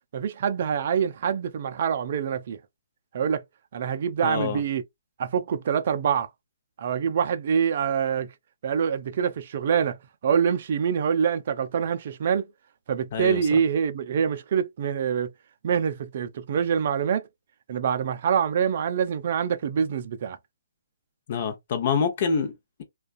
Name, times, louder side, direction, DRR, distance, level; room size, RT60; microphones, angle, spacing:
voice 1, 0.1-2.6 3.1-3.4 3.7-4.8 5.2-6.3 6.8-8.3 8.6-10.0 10.2-12.5 12.9-15.3 15.6-17.2 17.7-20.4, right 7 dB, 45° right, 0.4 m, -25 dB
voice 2, 4.2-4.6 13.1-13.6 21.3-22.8, left 6 dB, 45° left, 0.8 m, -27 dB
2.4 x 2.3 x 2.4 m
hypercardioid pair, 150°, 0 cm